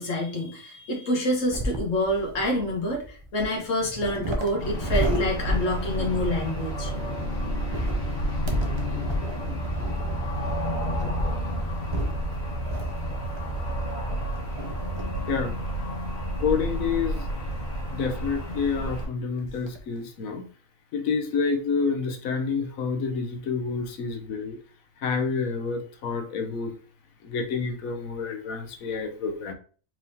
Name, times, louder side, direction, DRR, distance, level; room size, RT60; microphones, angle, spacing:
voice 1, 0.0-6.9, left 1 dB, 70° left, -1 dB, 1.6 m, -27 dB
sound 1, 1.4-6.3 7.6-13.8 14.6-15.5 15.9-16.0 17.1-17.8 18.7-18.8 19.0-19.1 19.4-19.8, equal, 35° right, 0.4 m, -32 dB
sound 2, 4.6-19.0, equal, 50° left, 1.6 m, -30 dB
voice 2, 16.4-17.3 17.9-20.4 20.9-24.6 25.0-26.7 27.2-29.5, left 5 dB, 90° left, 5 dB, 1.2 m, -28 dB
4.6 x 3.4 x 2.7 m, 0.40 s
omnidirectional pair, 1.4 m